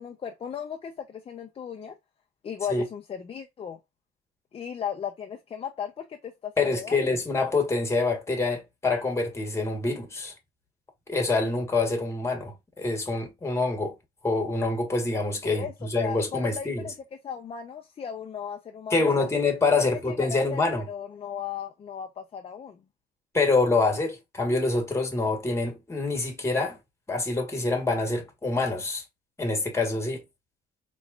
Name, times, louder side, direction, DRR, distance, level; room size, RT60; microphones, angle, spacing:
voice 1, 0.0-1.9 2.4-3.8 4.5-7.2 15.4-15.7 16.0-16.9 17.2-19.3 19.7-20.6 20.9-22.8, left 8 dB, 35° left, 0.6 m, -36 dB
voice 2, 6.6-10.3 11.1-14.0 14.2-16.9 18.9-20.9 23.3-26.8 27.1-29.0 29.4-30.2, left 3 dB, 15° left, 1.7 m, -26 dB
4.2 x 3.1 x 2.3 m
cardioid pair, 110°, 17 cm